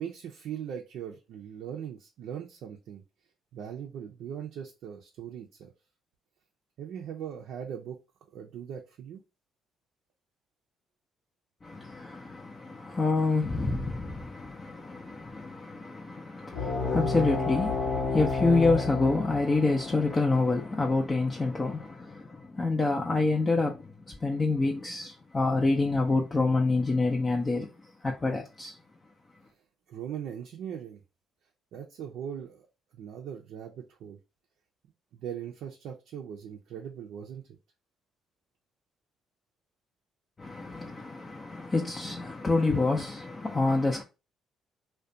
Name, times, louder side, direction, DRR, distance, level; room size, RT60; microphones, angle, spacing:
voice 1, 0.0-3.0 3.5-5.7 6.8-8.0 8.3-9.2 29.9-31.0 31.7-32.7 32.9-34.2 35.1-37.4, right 9 dB, 75° right, 0.4 m, -40 dB
voice 2, 11.6-27.7 28.0-28.8 40.4-44.0, left 3 dB, 30° left, 0.4 m, -27 dB
sound 1, 16.5-21.6, left 4 dB, 70° left, 1.0 m, -31 dB
2.4 x 2.1 x 2.6 m
supercardioid pair, 75°, 0 cm